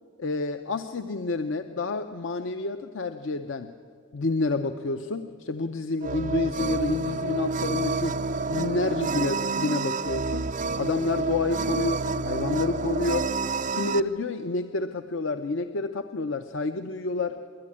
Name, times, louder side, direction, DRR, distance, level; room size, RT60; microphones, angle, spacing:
voice 1, 0.2-3.7 4.1-8.2 8.5-10.5 10.8-13.3 13.7-17.4, left 3 dB, 70° left, 9 dB, 0.6 m, -29 dB
sound 1, 6.0-14.0, right 3 dB, 40° right, 0.5 m, -29 dB
26.0 x 11.5 x 9.9 m, 2.2 s
head